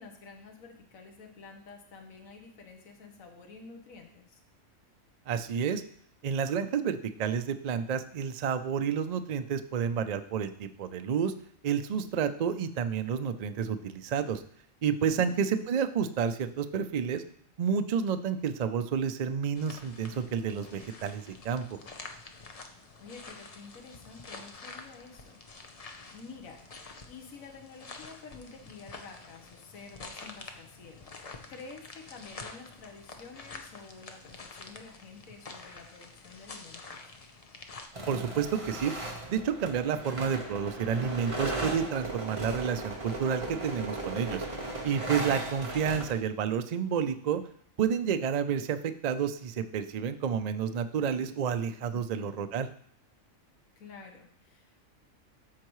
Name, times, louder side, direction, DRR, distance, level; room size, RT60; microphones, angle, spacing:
voice 1, 0.0-4.4 15.0-15.4 22.7-26.6 27.1-31.2 31.5-37.1 51.9-52.5 53.8-54.8, left 4 dB, 80° left, 3 dB, 1.4 m, -50 dB
voice 2, 5.3-5.8 6.2-11.3 11.6-14.4 14.8-17.2 17.6-21.8 38.1-38.9 39.3-44.5 44.8-47.4 47.8-52.7, right 7 dB, 85° right, 9 dB, 0.3 m, -30 dB
sound 1, 19.6-37.9, left 3 dB, 35° left, 0.6 m, -48 dB
sound 2, 37.9-46.1, right 2 dB, 25° right, 1.2 m, -37 dB
13.5 x 4.6 x 3.1 m, 0.63 s
omnidirectional pair, 1.4 m